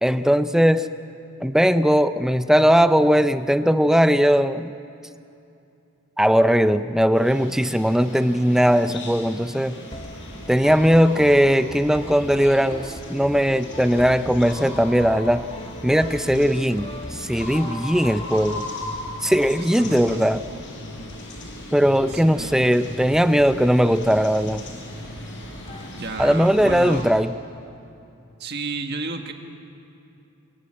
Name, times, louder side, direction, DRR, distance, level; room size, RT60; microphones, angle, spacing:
voice 1, 0.0-0.9 1.4-4.7 6.2-9.8 10.5-15.5 15.8-18.6 19.2-20.4 21.7-24.7 26.2-27.3, equal, ahead, 11 dB, 0.5 m, -19 dB
sound 1, 7.1-27.0, left 1 dB, 55° left, 5.2 m, -38 dB
sound 2, 9.9-27.7, left 1 dB, 25° left, 1.5 m, -40 dB
voice 2, 19.8-20.4 22.1-22.7 26.0-27.1 28.4-29.3, right 3 dB, 45° right, 5 dB, 1.7 m, -32 dB
23.5 x 22.5 x 8.9 m, 2.7 s
head